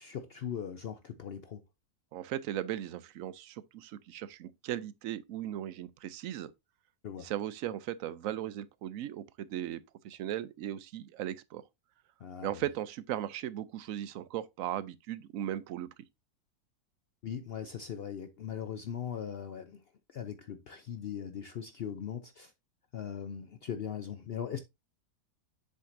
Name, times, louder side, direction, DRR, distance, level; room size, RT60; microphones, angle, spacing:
voice 1, 0.0-1.6 7.0-7.3 12.2-12.5 17.2-19.8 20.1-22.5 22.9-24.6, left 8 dB, 70° left, 0.5 m, -39 dB
voice 2, 2.1-6.5 7.2-11.6 12.4-15.9, right 12 dB, 70° right, 0.9 m, -37 dB
7.7 x 6.5 x 2.6 m
omnidirectional pair, 1.6 m